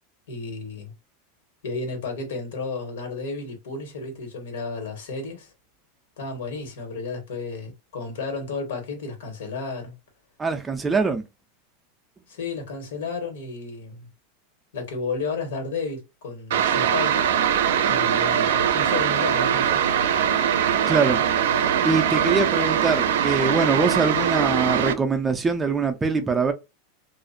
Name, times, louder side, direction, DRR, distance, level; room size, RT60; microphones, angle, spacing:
voice 1, 0.3-0.9 1.6-5.5 6.2-9.9 12.3-14.1 14.7-17.3 17.9-19.8, left 4 dB, 85° left, 1.3 m, -32 dB
voice 2, 10.4-11.2 20.9-21.3 21.8-26.5, right 4 dB, 10° right, 0.3 m, -23 dB
sound 1, 16.5-24.9, right 8 dB, 85° right, 0.4 m, -22 dB
2.4 x 2.1 x 2.5 m
supercardioid pair, 170°, 0 cm